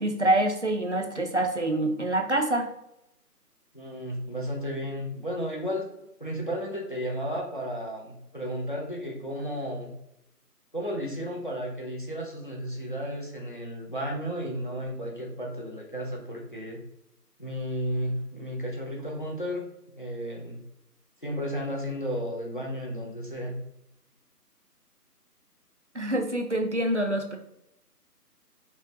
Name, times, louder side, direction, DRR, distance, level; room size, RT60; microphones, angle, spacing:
voice 1, 0.0-2.7 25.9-27.4, right 1 dB, 50° right, 4 dB, 0.5 m, -26 dB
voice 2, 3.7-5.9 6.2-9.9 10.7-16.8 17.4-19.6 19.9-20.6 21.2-23.6, equal, 30° left, -1 dB, 0.7 m, -33 dB
5.8 x 2.2 x 2.8 m, 0.83 s
figure-of-eight pair, 165°, 48 cm